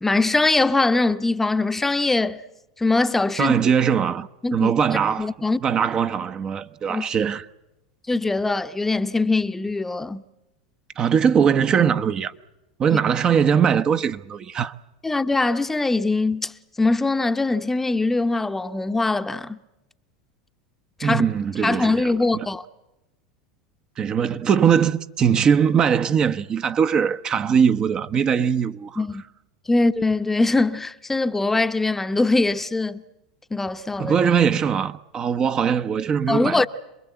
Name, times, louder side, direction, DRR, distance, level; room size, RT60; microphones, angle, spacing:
voice 1, 0.0-2.4 2.8-3.6 4.4-4.7 5.2-5.6 6.9-7.1 8.1-10.2 12.9-13.0 15.0-19.6 21.0-21.3 21.6-22.6 29.0-29.2 29.7-33.0 33.5-34.2 36.3-36.7, left 3 dB, 10° left, 0.9 m, -22 dB
voice 2, 3.4-5.3 5.6-7.4 11.0-12.3 12.8-14.7 21.0-22.5 24.0-29.0 34.0-36.7, right 7 dB, 35° right, 0.9 m, -21 dB
27.0 x 21.5 x 8.1 m
hypercardioid pair, 90°, 2 cm